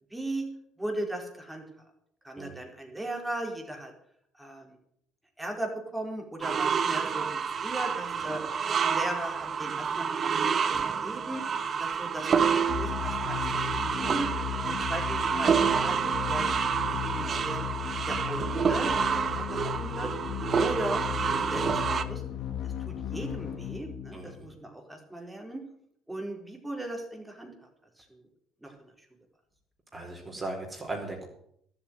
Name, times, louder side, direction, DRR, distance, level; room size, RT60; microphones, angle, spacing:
voice 1, 0.1-0.5 0.8-1.6 2.2-3.9 4.4-4.8 5.4-8.4 8.8-11.4 11.8-14.3 14.7-16.5 16.7-17.6 18.1-20.1 20.6-21.0 21.3-21.7 21.9-22.2 22.6-25.6 26.1-27.5 28.2-28.3 28.6-28.7, right 1 dB, 5° right, 2 dB, 4.5 m, -37 dB
sound 1, 6.4-22.0, right 6 dB, 45° right, 1.1 m, -28 dB
sound 2, 12.7-24.6, left 10 dB, 65° left, 2.2 m, -36 dB
voice 2, 24.1-24.5 29.9-31.3, right 2 dB, 25° right, 0 dB, 4.7 m, -37 dB
12.5 x 8.0 x 9.2 m, 0.71 s
supercardioid pair, 80°, 0 cm